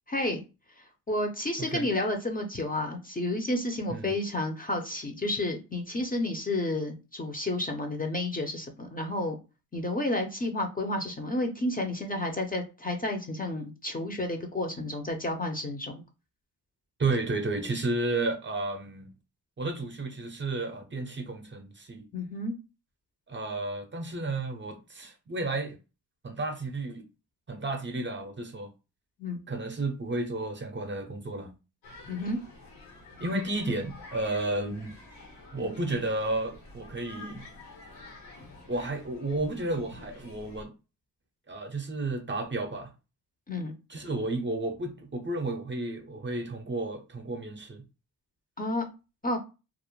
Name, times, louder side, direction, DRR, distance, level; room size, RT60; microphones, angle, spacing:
voice 1, 0.1-0.4 0.8-9.4 9.7-16.0 22.1-22.5 29.2-29.4 32.1-32.4 43.5-43.7 48.6-48.9 49.2-49.4, left 1 dB, 20° left, 0.5 m, -31 dB
voice 2, 17.0-19.1 19.6-22.1 23.3-25.8 26.2-27.0 27.5-28.7 29.5-31.5 33.2-34.9 35.5-37.4 38.7-40.7 41.5-42.9 43.9-47.8, right 2 dB, 30° right, 0.5 m, -32 dB
sound 1, 31.8-40.6, left 2 dB, 85° left, 1.2 m, -49 dB
2.4 x 2.0 x 3.0 m
cardioid pair, 75°, 40 cm